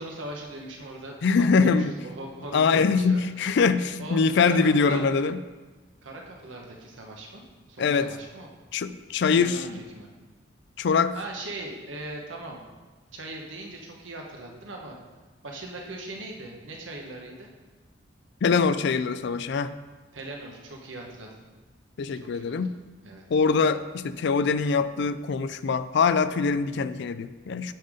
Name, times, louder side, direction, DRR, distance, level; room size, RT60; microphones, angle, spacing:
voice 1, 0.0-3.2 4.0-5.0 6.0-7.4 7.7-8.5 9.3-10.1 11.1-12.6 13.1-14.9 15.4-17.5 20.1-21.4 22.2-22.6 23.0-23.2, right 2 dB, 90° right, 0 dB, 1.3 m, -39 dB
voice 2, 1.2-2.0 2.5-5.4 7.8-8.1 8.7-9.6 10.8-11.2 18.4-19.7 22.0-22.7 23.3-27.7, left 5 dB, 65° left, 13 dB, 0.4 m, -23 dB
9.2 x 4.0 x 5.1 m, 1.3 s
head